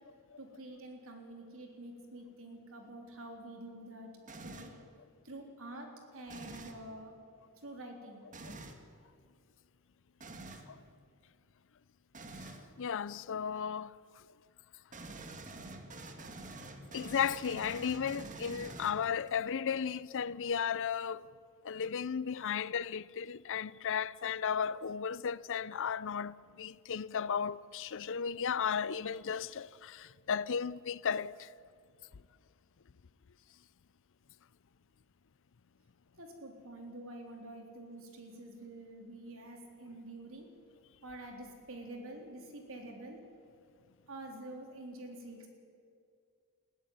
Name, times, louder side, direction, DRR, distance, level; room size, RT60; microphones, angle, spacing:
voice 1, 0.4-4.1 4.4-4.7 5.2-7.2 7.6-8.2 36.2-40.5 41.0-43.2 44.1-45.5, right 1 dB, 65° right, 3.7 m, -47 dB
sound 1, 4.3-4.8 6.3-6.8 8.3-8.8 10.2-10.7 12.1-12.6 14.9-19.3, right 2 dB, 35° right, 1.7 m, -47 dB
voice 2, 8.4-8.8 10.7-10.8 12.8-14.2 16.9-21.3 21.6-31.5, left 7 dB, 60° left, 0.5 m, -35 dB
21.0 x 14.5 x 9.5 m
head